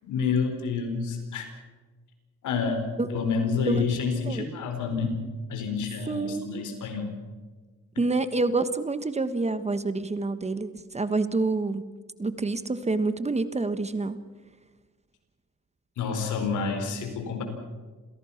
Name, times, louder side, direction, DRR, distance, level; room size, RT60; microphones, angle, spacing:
voice 1, 0.0-1.4 2.4-5.2 5.5-7.1 16.0-17.4, left 5 dB, 75° left, 5 dB, 4.7 m, -28 dB
voice 2, 6.1-6.6 8.0-11.9 12.2-14.2, right 3 dB, 20° right, 12 dB, 1.3 m, -27 dB
27.5 x 17.0 x 5.9 m, 1.4 s
cardioid pair, 90°, 30 cm